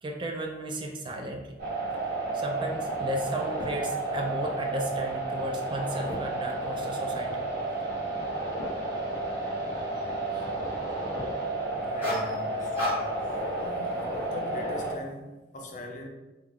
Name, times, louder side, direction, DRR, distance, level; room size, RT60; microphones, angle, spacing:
voice 1, 0.0-1.5 2.3-7.4 10.3-10.5, right 1 dB, 25° right, 2 dB, 0.3 m, -34 dB
sound 1, 1.6-14.9, right 2 dB, 60° right, 1.1 m, -32 dB
voice 2, 11.7-13.2 13.6-16.1, left 1 dB, 45° left, 2 dB, 0.5 m, -41 dB
sound 2, 12.0-12.4 12.7-13.3 13.8-14.1, left 1 dB, 10° right, 1.1 m, -32 dB
3.0 x 2.3 x 3.5 m, 1.1 s
head